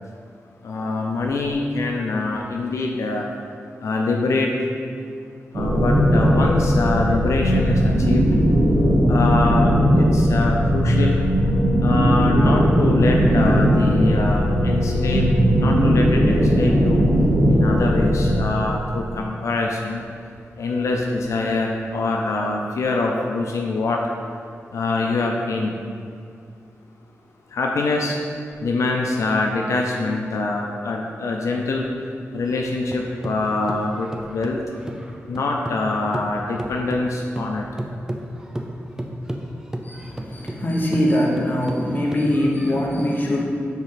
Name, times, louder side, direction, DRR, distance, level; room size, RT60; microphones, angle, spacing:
voice 1, 0.6-3.3 3.8-4.5 5.5-8.2 9.1-11.2 11.8-15.3 15.5-17.0 17.5-20.0 20.6-24.0 24.7-25.7 27.5-28.2 28.6-31.9 32.3-34.6 35.3-37.6, left 3 dB, 90° left, 0 dB, 0.6 m, -24 dB
sound 1, 5.5-18.4, equal, 70° right, 1.3 m, -18 dB
sound 2, 32.5-35.9 36.1-42.8, right 1 dB, 10° right, 0.5 m, -33 dB
voice 2, 39.8-43.4, left 1 dB, 40° left, -3 dB, 1.2 m, -22 dB
5.8 x 4.3 x 5.8 m, 2.3 s
wide cardioid pair, 115°, 5 cm